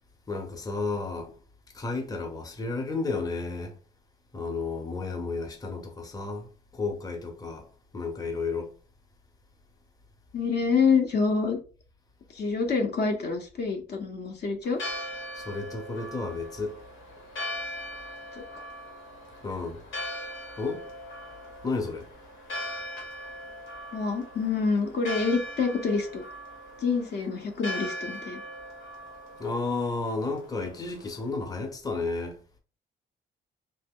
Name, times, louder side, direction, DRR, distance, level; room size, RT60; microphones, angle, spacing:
voice 1, 0.3-1.4 1.7-3.7 4.3-6.5 6.7-7.7 7.9-8.7 15.3-16.7 19.4-19.8 20.6-20.9 21.6-22.1 29.4-32.4, left 3 dB, 20° left, 0.7 m, -32 dB
voice 2, 10.3-11.6 12.3-14.8 18.4-18.5 23.9-26.2 26.8-28.4, left 5 dB, 55° left, 0.7 m, -27 dB
Church bell, 14.6-31.3, equal, 75° left, 1.1 m, -40 dB
3.0 x 2.0 x 3.5 m
cardioid pair, 90°, 20 cm